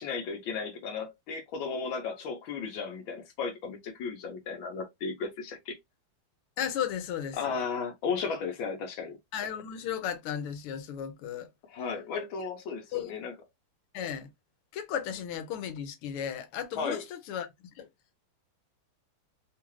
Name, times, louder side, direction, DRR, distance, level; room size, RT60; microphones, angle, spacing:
voice 1, 0.0-5.8 7.3-9.2 11.7-13.3 16.7-17.0, left 5 dB, 70° left, 1.5 m, -35 dB
voice 2, 6.6-7.6 9.3-11.5 12.9-13.1 13.9-14.3 14.7-17.5 17.8-17.9, left 9 dB, 85° left, 1.6 m, -35 dB
3.7 x 2.4 x 3.0 m
omnidirectional pair, 2.4 m